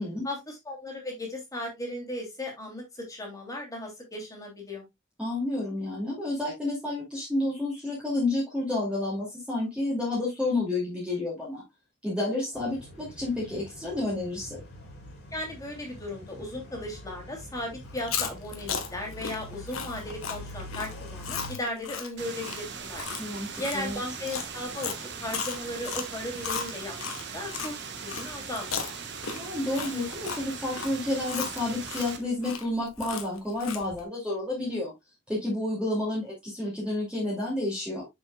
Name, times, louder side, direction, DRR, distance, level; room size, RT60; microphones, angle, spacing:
voice 1, 0.2-4.8 15.3-23.0 23.6-28.9, left 1 dB, 15° left, 0 dB, 2.9 m, -36 dB
voice 2, 5.2-11.6 12.0-14.6 23.2-24.0 29.3-34.9 35.3-38.1, left 2 dB, 5° right, -5 dB, 2.5 m, -30 dB
sound 1, 12.5-21.6, left 1 dB, 50° left, 3.3 m, -44 dB
Chewing mastication, 17.9-27.7 28.1-34.0, left 6 dB, 80° left, 1.4 m, -36 dB
sound 2, 22.2-32.2, right 6 dB, 55° right, 1.3 m, -40 dB
6.9 x 6.9 x 2.3 m, 0.19 s
head